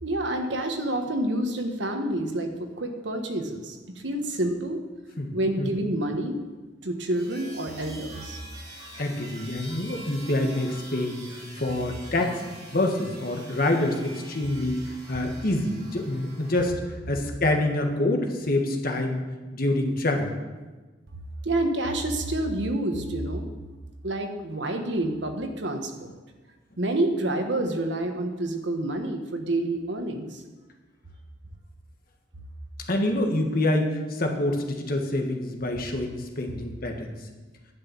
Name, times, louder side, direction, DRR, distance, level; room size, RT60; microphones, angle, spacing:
voice 1, 0.0-3.8 4.0-4.8 5.3-6.4 6.8-8.4 21.4-23.5 24.0-26.1 26.8-30.4, right 1 dB, 70° right, 5 dB, 1.4 m, -28 dB
voice 2, 5.2-5.7 9.0-19.2 19.5-20.3 32.9-37.2, left 1 dB, 50° left, 3 dB, 1.6 m, -26 dB
sound 1, 7.1-16.7, right 1 dB, 25° right, 3.0 m, -45 dB
11.0 x 6.1 x 8.8 m, 1.2 s
head